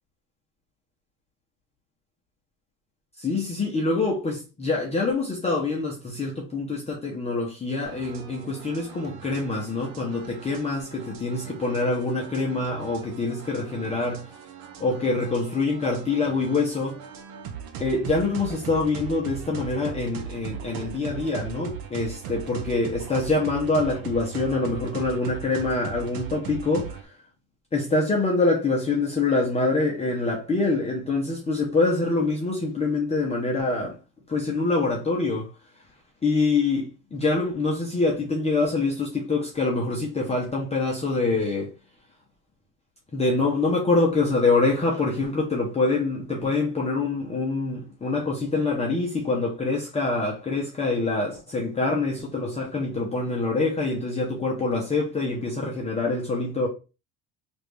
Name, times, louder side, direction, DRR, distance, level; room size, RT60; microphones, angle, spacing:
voice 1, 3.2-14.3 14.8-17.0 17.8-27.2 27.7-34.0 34.3-35.5 36.2-41.7 43.1-56.7, left 3 dB, 15° left, 0.7 m, -25 dB
sound 1, 7.8-27.0, right 7 dB, 55° right, 0.8 m, -39 dB
3.2 x 2.6 x 3.1 m
cardioid pair, 125°, 43 cm